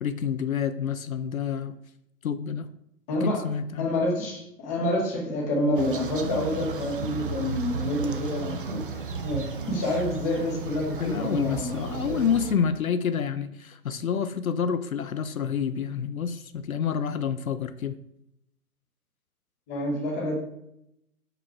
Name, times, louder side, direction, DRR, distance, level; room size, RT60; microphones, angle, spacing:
voice 1, 0.0-1.8 2.2-2.7 3.2-3.9 11.0-18.0, left 7 dB, 65° left, 12 dB, 0.5 m, -28 dB
voice 2, 3.1-3.4 3.8-12.2 19.7-20.4, left 1 dB, 10° left, -1 dB, 0.7 m, -28 dB
sound 1, 5.8-12.5, right 4 dB, 35° right, 0.5 m, -34 dB
6.0 x 5.0 x 4.6 m, 0.80 s
figure-of-eight pair, 130°, 46 cm